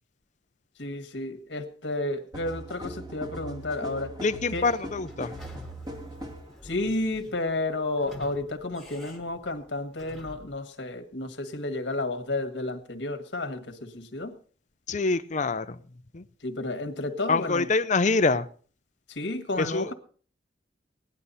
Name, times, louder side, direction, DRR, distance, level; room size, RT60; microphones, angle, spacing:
voice 1, 0.8-4.2 4.5-4.7 6.6-14.4 16.4-17.7 19.1-19.9, left 2 dB, 65° left, 7 dB, 1.6 m, -31 dB
sound 1, 2.3-6.5, right 1 dB, 20° right, 1.9 m, -40 dB
voice 2, 4.2-5.3 14.9-15.8 16.1-16.2 17.3-18.5 19.6-19.9, left 3 dB, 40° left, 12 dB, 0.6 m, -25 dB
Sliding door / Squeak, 4.5-10.6, left 1 dB, ahead, 1.9 m, -49 dB
17.0 x 11.0 x 4.2 m, 0.43 s
head